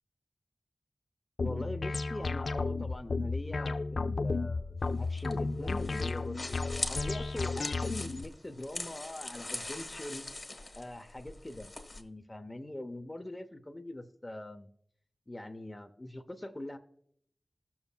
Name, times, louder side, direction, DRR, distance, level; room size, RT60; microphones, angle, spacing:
sound 1, 1.4-8.2, left 3 dB, 75° left, 0.3 m, -33 dB
voice 1, 1.4-6.6 6.9-10.2 10.8-11.7 12.0-14.7 15.3-16.8, left 1 dB, 30° left, 6 dB, 0.7 m, -42 dB
sound 2, 4.8-12.0, left 2 dB, 50° left, 1.2 m, -41 dB
16.0 x 7.2 x 2.2 m, 0.67 s
cardioid pair, 50°, 0 cm